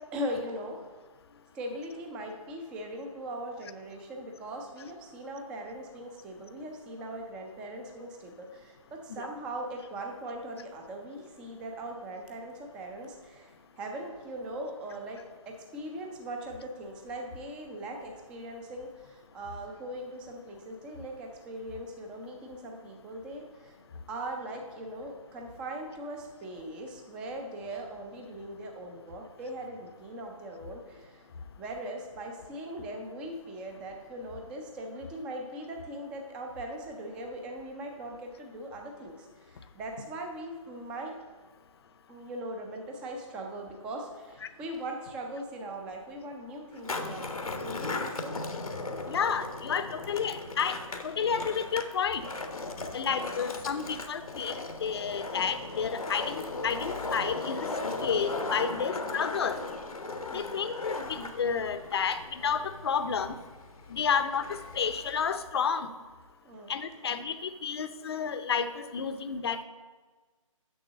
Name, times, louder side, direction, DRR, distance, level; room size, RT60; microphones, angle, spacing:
voice 1, 0.1-0.8 1.5-23.8 24.1-31.3 31.6-41.1 42.1-48.3 58.6-58.8 60.3-60.5 64.0-64.1 66.4-66.7, right 1 dB, 5° right, 3 dB, 0.3 m, -40 dB
Skateboard, 46.7-65.4, left 3 dB, 90° left, 1.0 m, -37 dB
voice 2, 49.1-50.8 51.0-52.2 52.9-57.7 58.0-59.6 60.3-63.3 63.9-65.9 66.7-69.6, left 6 dB, 45° left, 11 dB, 0.6 m, -31 dB
6.9 x 5.9 x 6.2 m, 1.4 s
figure-of-eight pair, 150°, 18 cm